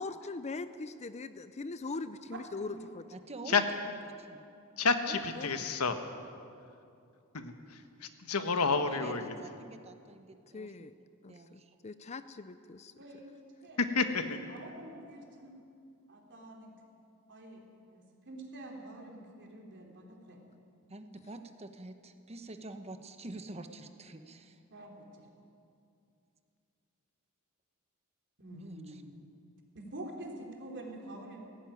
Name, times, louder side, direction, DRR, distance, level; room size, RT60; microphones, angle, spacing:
voice 1, 0.0-3.0 5.4-5.5 10.5-10.9 11.2-12.9, left 3 dB, 30° left, 12 dB, 0.5 m, -41 dB
voice 2, 2.3-2.8 13.0-13.8 14.5-15.5 16.1-16.7 17.3-17.6 17.9-20.4 24.7-25.3 28.4-29.1 29.7-31.4, right 1 dB, 55° right, 0 dB, 3.5 m, -47 dB
voice 3, 3.1-4.4 5.0-5.2 8.6-10.7 11.3-11.8 20.9-24.6 28.5-29.0, right 2 dB, 30° right, 8 dB, 1.1 m, -47 dB
voice 4, 4.8-6.0 7.3-9.3 13.9-14.4, left 4 dB, 80° left, 7 dB, 1.4 m, -30 dB
17.0 x 17.0 x 9.4 m, 2.5 s
head